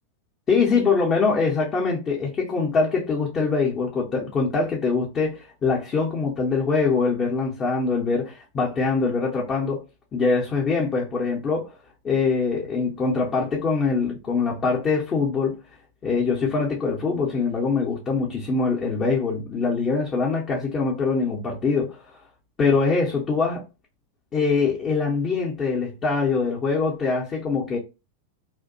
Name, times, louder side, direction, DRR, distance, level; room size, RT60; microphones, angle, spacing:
voice 1, 0.5-9.8 10.1-11.7 12.0-15.6 16.0-22.0 22.6-23.6 24.3-27.8, left 4 dB, 25° left, 0.7 m, -23 dB
2.6 x 2.1 x 2.6 m
figure-of-eight pair, 90°, 0 cm